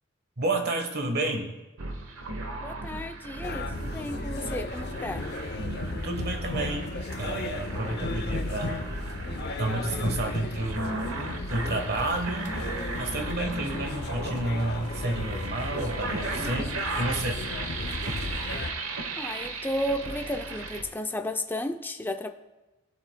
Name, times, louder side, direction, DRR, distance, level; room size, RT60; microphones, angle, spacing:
voice 1, 0.4-1.5 6.0-8.9 9.6-10.9 11.5-12.5 13.0-17.4, right 2 dB, 50° right, 4 dB, 1.2 m, -30 dB
sound 1, 1.8-20.8, right 2 dB, 85° right, 1.0 m, -36 dB
voice 2, 2.6-5.3 19.2-22.3, left 1 dB, 10° left, 6 dB, 0.4 m, -33 dB
sound 2, 3.4-18.7, left 2 dB, 50° left, 0.6 m, -35 dB
17.0 x 7.6 x 2.2 m, 1.1 s
head